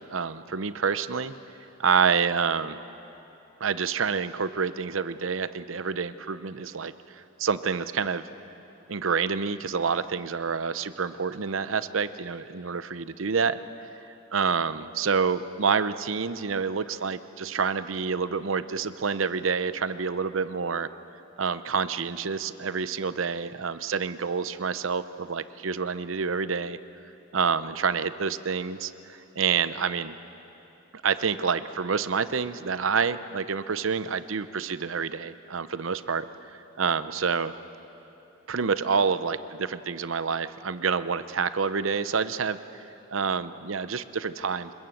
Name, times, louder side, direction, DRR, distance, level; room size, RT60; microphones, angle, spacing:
voice 1, 0.0-1.3 1.8-2.8 3.6-8.2 8.9-13.6 14.1-20.9 21.4-26.8 27.3-30.2 31.0-37.5 38.5-42.8 43.1-44.7, right 5 dB, 85° right, 13 dB, 0.8 m, -28 dB
26.5 x 21.5 x 7.9 m, 3.0 s
head